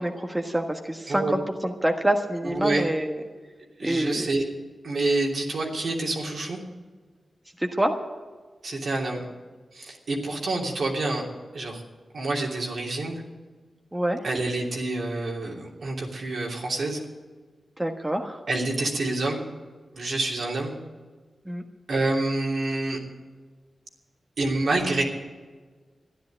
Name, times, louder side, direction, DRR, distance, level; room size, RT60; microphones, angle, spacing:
voice 1, 0.0-3.2 3.8-4.3 7.6-7.9 13.9-14.2 17.8-18.4 21.4-21.6, right 1 dB, 15° right, 3 dB, 1.4 m, -26 dB
voice 2, 2.4-2.8 3.8-4.4 4.8-6.6 8.6-9.2 9.7-11.2 11.5-11.8 12.1-13.2 14.2-17.0 18.5-19.4 19.9-20.8 21.9-23.0 24.4-25.0, right 2 dB, 75° right, -1 dB, 3.1 m, -27 dB
13.0 x 10.5 x 8.6 m, 1.4 s
cardioid pair, 55°, 0 cm